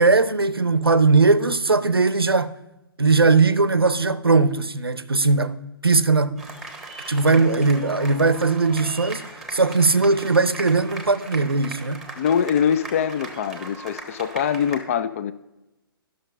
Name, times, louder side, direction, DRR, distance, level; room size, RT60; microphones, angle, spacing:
voice 1, 0.0-2.5 3.0-5.5 5.8-6.4 7.1-12.0, right 3 dB, 80° right, 0.6 m, -19 dB
sound 1, 6.4-14.8, right 2 dB, ahead, 1.3 m, -38 dB
voice 2, 12.2-15.3, left 8 dB, 35° left, 0.4 m, -23 dB
11.0 x 6.5 x 5.4 m
figure-of-eight pair, 125°, 12 cm